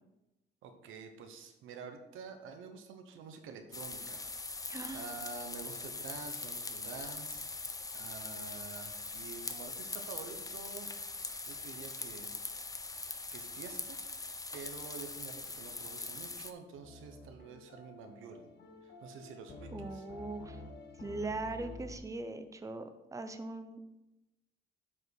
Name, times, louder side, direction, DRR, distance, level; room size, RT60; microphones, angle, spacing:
voice 1, 0.6-4.2 4.9-7.5 7.9-10.9 11.5-12.3 13.3-14.0 14.5-18.5 18.8-20.1, right 5 dB, 90° right, 6 dB, 1.1 m, -48 dB
sound 1, 3.7-16.5, left 3 dB, 15° left, 0.7 m, -42 dB
voice 2, 4.7-5.1 19.7-20.6 21.0-23.8, right 2 dB, 15° right, 8 dB, 0.8 m, -40 dB
sound 2, 16.7-22.0, left 2 dB, 60° left, 1.4 m, -50 dB
7.7 x 4.7 x 6.4 m, 0.94 s
cardioid pair, 90°, 20 cm